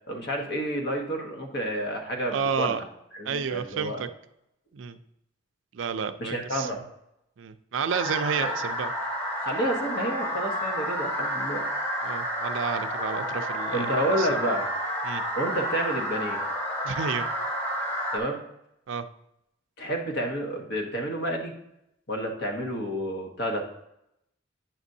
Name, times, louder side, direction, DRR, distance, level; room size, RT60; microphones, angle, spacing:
voice 1, 0.1-2.8 3.1-4.0 6.2-6.8 8.4-8.5 9.4-11.6 13.7-14.7 15.4-16.4 18.1-18.4 19.8-21.5 22.1-23.6, right 1 dB, 55° left, 2 dB, 1.2 m, -30 dB
voice 2, 2.3-2.8 3.3-4.1 4.7-5.0 5.7-6.7 7.4-8.9 12.0-13.9 14.2-14.3 15.0-15.2 16.8-17.3 18.9-19.1, right 6 dB, 75° right, 10 dB, 0.4 m, -30 dB
sound 1, 7.9-18.2, equal, 10° left, 1.0 m, -30 dB
8.9 x 6.0 x 2.7 m, 0.81 s
head